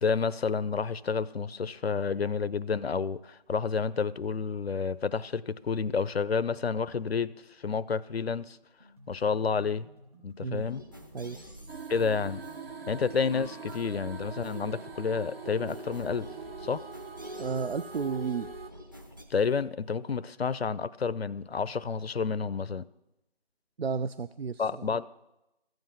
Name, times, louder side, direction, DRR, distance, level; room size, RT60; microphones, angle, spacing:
voice 1, 0.0-8.6 9.1-9.9 10.2-10.8 11.9-12.4 12.9-16.3 16.6-16.8 19.3-22.9 24.6-25.1, left 5 dB, 85° left, 18 dB, 0.6 m, -30 dB
sound 1, 8.8-16.8, left 1 dB, 40° right, 4.3 m, -55 dB
sound 2, 10.5-19.2, equal, 20° right, 0.8 m, -49 dB
sound 3, 11.7-18.7, right 4 dB, 70° right, 1.1 m, -42 dB
voice 2, 17.4-18.5 23.8-24.9, right 5 dB, 90° right, 14 dB, 0.5 m, -32 dB
14.5 x 7.9 x 7.1 m, 0.92 s
figure-of-eight pair, 165°, 30 cm